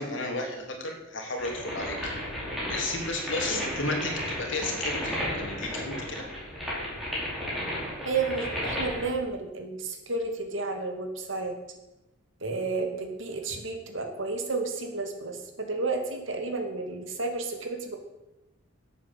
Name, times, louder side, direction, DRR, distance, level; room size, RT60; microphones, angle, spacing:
voice 1, 0.0-2.1 2.7-6.3, left 2 dB, 70° left, 2 dB, 3.1 m, -33 dB
sound 1, 1.4-9.1, equal, ahead, 4.9 m, -33 dB
voice 2, 8.0-11.6 12.4-18.0, right 3 dB, 70° right, 5 dB, 2.3 m, -32 dB
11.5 x 8.4 x 8.1 m, 0.98 s
head